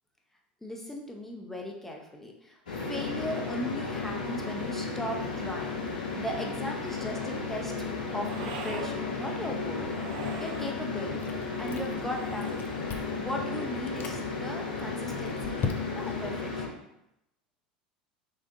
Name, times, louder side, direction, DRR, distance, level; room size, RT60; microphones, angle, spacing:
voice 1, 0.6-5.8 6.1-9.9 10.4-11.2 11.6-12.6 13.1-15.6 15.9-16.8, equal, 5° left, 0 dB, 0.9 m, -38 dB
sound 1, 2.7-16.7, left 4 dB, 75° left, 0.8 m, -34 dB
sound 2, 6.5-7.3 8.2-9.0 9.8-10.7 12.0-12.9, right 6 dB, 65° right, 0.6 m, -43 dB
Chewing mastication, 11.2-12.1 12.4-13.2 13.8-14.2 14.8-16.2, left 6 dB, 45° left, 0.6 m, -37 dB
6.3 x 2.5 x 2.6 m, 0.85 s
figure-of-eight pair, 75°, 5 cm